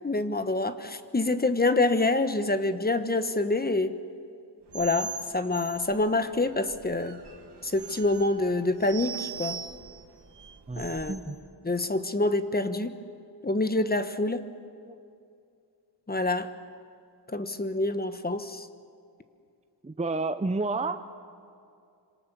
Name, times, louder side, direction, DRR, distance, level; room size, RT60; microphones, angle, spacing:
voice 1, 0.0-3.9 4.7-7.2 7.6-9.6 10.8-11.1 11.6-12.9 13.4-14.4 16.1-16.5 17.3-18.7, left 2 dB, 20° left, 10 dB, 1.2 m, -26 dB
sound 1, 4.7-11.3, right 6 dB, 65° right, 2.0 m, -41 dB
voice 2, 10.7-11.4 14.9-15.0 19.8-21.0, right 3 dB, 15° right, 9 dB, 0.7 m, -30 dB
26.0 x 26.0 x 7.0 m, 2.5 s
wide cardioid pair, 110°, 43 cm